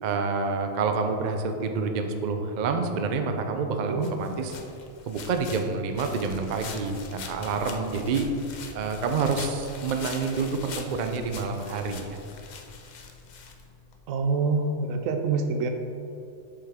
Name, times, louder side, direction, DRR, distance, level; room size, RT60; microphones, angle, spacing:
voice 1, 0.0-4.6 5.1-8.3 8.7-12.2, right 4 dB, 60° right, 5 dB, 0.4 m, -28 dB
sound 1, 4.0-14.0, left 4 dB, 65° left, 0.4 m, -42 dB
voice 2, 14.1-15.7, right 4 dB, 80° right, 6 dB, 1.0 m, -26 dB
6.8 x 5.6 x 3.5 m, 2.7 s
omnidirectional pair, 1.4 m